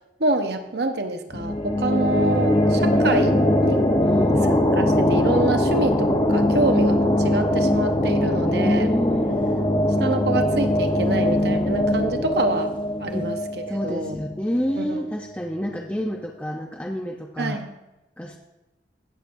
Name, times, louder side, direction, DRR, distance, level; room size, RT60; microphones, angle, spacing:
voice 1, 0.2-3.4 3.6-3.9 4.8-8.9 10.0-12.7 13.0-13.4 13.7-14.2 14.8-15.0 17.4-17.7, right 2 dB, 60° right, 6 dB, 0.9 m, -26 dB
sound 1, 1.3-14.7, left 1 dB, 25° left, 1.0 m, -21 dB
voice 2, 4.0-4.5 8.4-9.2 13.1-13.3 13.7-17.6 18.2-18.4, equal, 10° left, 0 dB, 0.6 m, -28 dB
16.5 x 7.0 x 2.6 m, 1.0 s
head